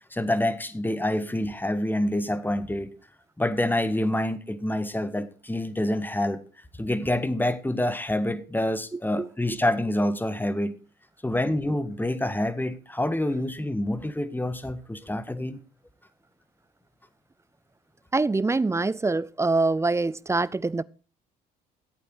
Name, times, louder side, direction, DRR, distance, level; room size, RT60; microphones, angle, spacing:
voice 1, 0.1-2.9 3.4-6.4 6.8-10.7 11.2-15.6, left 1 dB, 10° left, 1.6 m, -27 dB
voice 2, 9.2-9.6 18.1-20.8, right 3 dB, 15° right, 0.5 m, -25 dB
15.0 x 8.5 x 4.7 m
supercardioid pair, 65°, 20 cm